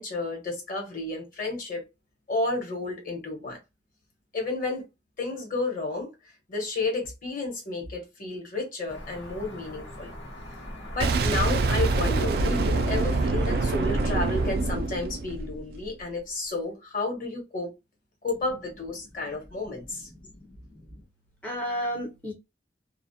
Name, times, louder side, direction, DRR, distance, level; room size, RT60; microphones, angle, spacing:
voice 1, 0.0-1.8 2.3-3.6 4.3-4.9 5.2-10.1 10.9-17.7 18.2-20.1, left 2 dB, 50° left, 1.0 m, -31 dB
sound 1, 8.9-14.5, equal, 85° left, 0.9 m, -38 dB
Boom, 11.0-15.9, right 3 dB, 60° right, 0.3 m, -25 dB
voice 2, 20.2-21.0 21.4-22.3, equal, 10° left, 0.5 m, -34 dB
2.3 x 2.0 x 2.7 m
head